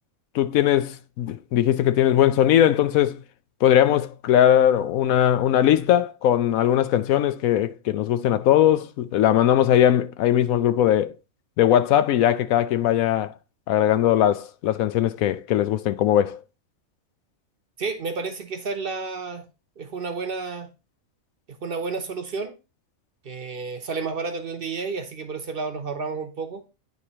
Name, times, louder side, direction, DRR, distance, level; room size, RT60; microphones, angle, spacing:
voice 1, 0.3-3.2 3.6-11.1 11.6-13.3 13.7-16.4, left 11 dB, 80° left, 1.0 m, -20 dB
voice 2, 17.8-19.5 19.8-20.7 21.6-22.5 23.2-26.6, right 4 dB, 45° right, 1.0 m, -31 dB
9.5 x 3.2 x 4.1 m
omnidirectional pair, 1.4 m